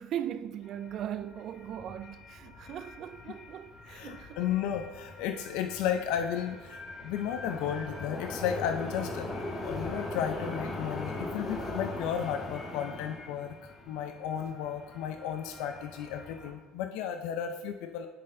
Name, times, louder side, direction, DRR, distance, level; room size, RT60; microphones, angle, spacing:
voice 1, 0.0-4.5, right 10 dB, 45° right, 0.3 m, -39 dB
sound 1, 0.6-16.5, left 2 dB, 20° left, 1.3 m, -41 dB
voice 2, 3.9-9.3 9.6-18.1, left 9 dB, 75° left, 0.5 m, -34 dB
9.6 x 4.2 x 3.7 m
cardioid pair, 130°, 0 cm